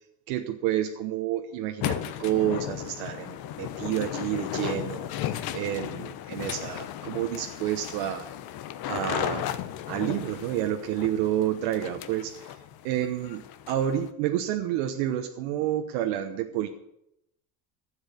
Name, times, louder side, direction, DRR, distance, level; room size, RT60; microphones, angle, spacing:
voice 1, 0.3-8.3 8.8-9.5 9.9-12.6 12.8-16.7, right 12 dB, 80° right, 5 dB, 1.2 m, -29 dB
sound 1, 1.8-14.1, left 11 dB, 55° left, 1.1 m, -35 dB
12.0 x 8.0 x 8.4 m, 0.80 s
cardioid pair, 135°, 44 cm